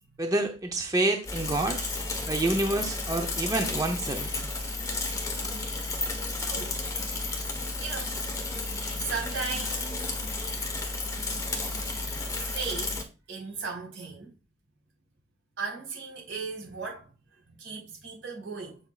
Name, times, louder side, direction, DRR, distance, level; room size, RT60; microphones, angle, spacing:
voice 1, 0.2-1.8 2.3-4.5 5.2-5.5, right 2 dB, 20° right, 0.7 m, -28 dB
Bicycle / Mechanisms, 1.2-13.0, left 3 dB, 15° left, 1.2 m, -32 dB
voice 2, 6.4-6.8 7.8-8.2 8.6-10.0 12.4-14.3 15.6-18.8, right 4 dB, 90° right, 4.4 m, -37 dB
8.1 x 6.1 x 2.4 m
head